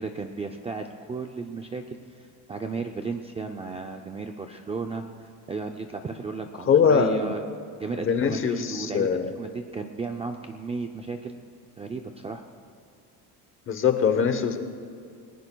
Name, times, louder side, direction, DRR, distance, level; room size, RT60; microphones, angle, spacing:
voice 1, 0.0-7.4 7.8-11.4 11.8-12.4, right 4 dB, 15° right, 4 dB, 0.3 m, -34 dB
voice 2, 6.7-7.4 7.9-9.3 13.7-14.8, left 6 dB, 30° left, 8 dB, 0.8 m, -22 dB
29.0 x 19.0 x 2.2 m, 2.4 s
cardioid pair, 180°, 39 cm